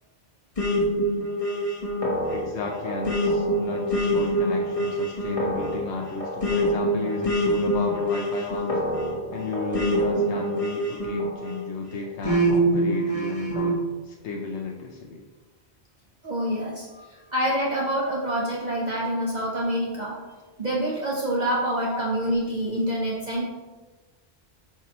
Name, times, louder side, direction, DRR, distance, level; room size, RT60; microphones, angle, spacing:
sound 1, 0.6-11.6 12.2-13.8, right 1 dB, 30° left, 1.3 m, -25 dB
voice 1, 2.3-8.8 9.3-15.2 21.9-22.0, left 3 dB, 80° left, 1 dB, 0.9 m, -33 dB
voice 2, 16.2-20.2 20.6-23.5, equal, 40° right, -4 dB, 1.0 m, -26 dB
8.1 x 5.9 x 3.0 m, 1.3 s
omnidirectional pair, 1.1 m